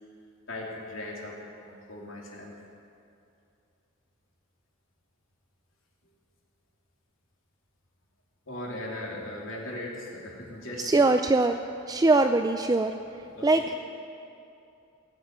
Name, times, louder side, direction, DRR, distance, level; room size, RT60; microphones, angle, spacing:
voice 1, 0.5-2.5 8.5-11.0 13.3-13.8, left 1 dB, 65° left, -3 dB, 2.9 m, -38 dB
voice 2, 10.8-11.6 11.9-12.9 13.4-13.7, right 2 dB, 20° right, 7 dB, 0.4 m, -22 dB
17.5 x 8.5 x 9.2 m, 2.6 s
head